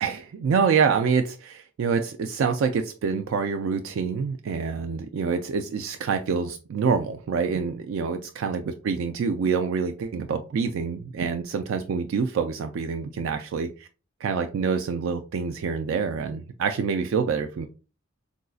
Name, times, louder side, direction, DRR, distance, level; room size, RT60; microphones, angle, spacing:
voice 1, 0.0-13.9 14.2-17.7, right 5 dB, 85° right, 0.3 m, -26 dB
3.9 x 2.5 x 2.3 m
head